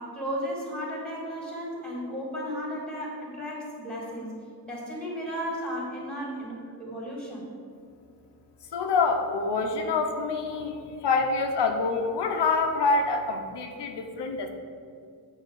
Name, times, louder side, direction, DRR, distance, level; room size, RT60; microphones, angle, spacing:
voice 1, 0.0-4.3 4.6-7.5, equal, ahead, -3 dB, 2.1 m, -34 dB
voice 2, 8.7-14.5, left 4 dB, 90° left, 4 dB, 0.8 m, -26 dB
8.1 x 4.1 x 6.2 m, 2.3 s
wide cardioid pair, 140°, 40 cm